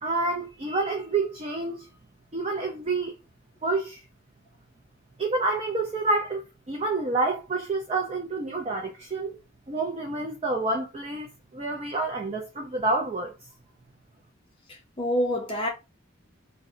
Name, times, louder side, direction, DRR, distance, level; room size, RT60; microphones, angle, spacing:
voice 1, 0.0-1.9 2.3-3.2 3.6-4.0 5.2-9.4 9.7-13.3, right 3 dB, 30° right, 0.4 m, -28 dB
voice 2, 14.7-15.7, equal, 25° left, 0.6 m, -27 dB
2.6 x 2.1 x 3.7 m
head